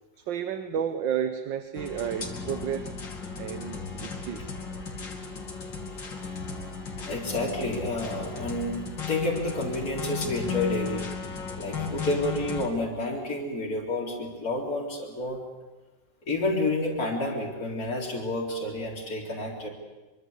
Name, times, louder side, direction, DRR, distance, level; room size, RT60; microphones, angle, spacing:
voice 1, 0.2-2.9 3.4-4.5, right 8 dB, 80° right, 10 dB, 1.7 m, -32 dB
sound 1, 1.7-12.7, left 5 dB, 80° left, 3.4 m, -35 dB
voice 2, 7.1-11.0 11.6-15.4 16.3-19.7, left 2 dB, 50° left, -3 dB, 4.5 m, -30 dB
24.5 x 23.5 x 8.2 m, 1.1 s
omnidirectional pair, 2.0 m